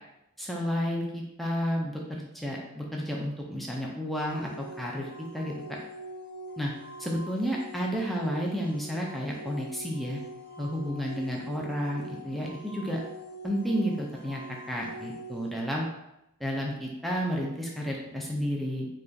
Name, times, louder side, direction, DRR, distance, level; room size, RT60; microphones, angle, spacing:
voice 1, 0.4-5.1 5.3-5.8 6.6-6.7 7.0-10.2 10.6-13.0 13.4-14.4 14.7-15.9 16.4-18.9, equal, ahead, -3 dB, 0.4 m, -31 dB
sound 1, 4.3-15.5, equal, 50° left, 0.7 m, -44 dB
4.7 x 2.4 x 2.6 m, 0.86 s
head